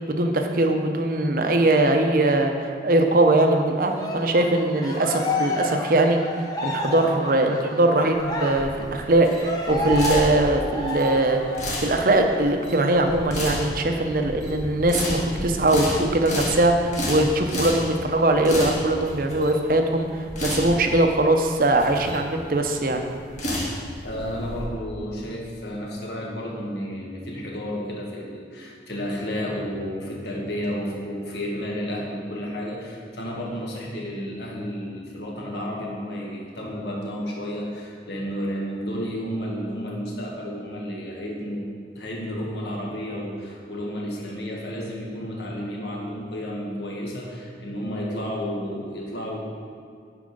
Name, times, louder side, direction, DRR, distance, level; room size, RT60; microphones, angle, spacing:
voice 1, 0.0-6.2 6.6-23.1, right 2 dB, 50° right, 4 dB, 0.7 m, -21 dB
Cheering, 3.9-11.9 12.3-12.4 12.8-13.8, left 1 dB, 20° left, 0.8 m, -30 dB
sound 1, 8.1-24.6, left 1 dB, 40° left, 1.7 m, -32 dB
voice 2, 24.0-41.7 41.9-49.4, equal, 70° left, -2 dB, 1.6 m, -31 dB
8.4 x 5.0 x 5.3 m, 2.2 s
head